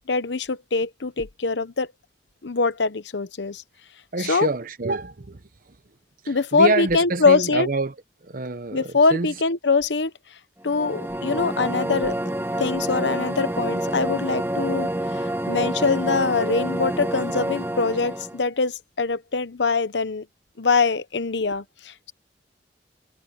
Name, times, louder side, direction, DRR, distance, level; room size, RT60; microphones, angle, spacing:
voice 1, 0.1-1.9 2.4-3.6 4.2-4.5 6.3-7.7 8.7-10.1 10.6-12.2 12.6-20.3 20.6-22.1, left 4 dB, 85° left, 0.9 m, -23 dB
voice 2, 4.1-5.4 6.2-7.9 8.2-9.3, right 3 dB, 50° right, 0.9 m, -27 dB
sound 1, 10.6-18.4, right 1 dB, 15° right, 1.2 m, -28 dB
head